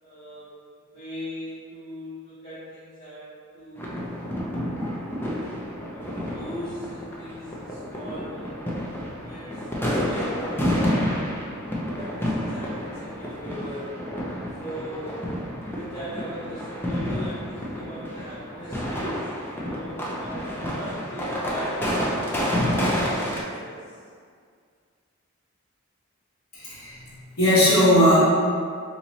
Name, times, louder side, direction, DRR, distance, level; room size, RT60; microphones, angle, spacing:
voice 1, 0.0-0.5 0.9-3.9 5.9-8.6 9.2-11.2 11.9-14.0 14.6-15.2 15.7-19.3 19.6-24.0, equal, 35° left, -14 dB, 1.0 m, -39 dB
sound 1, 3.8-23.4, equal, 10° left, 0.4 m, -29 dB
voice 2, 26.5-28.2, equal, 70° left, -12 dB, 1.2 m, -19 dB
2.9 x 2.8 x 4.0 m, 2.1 s
head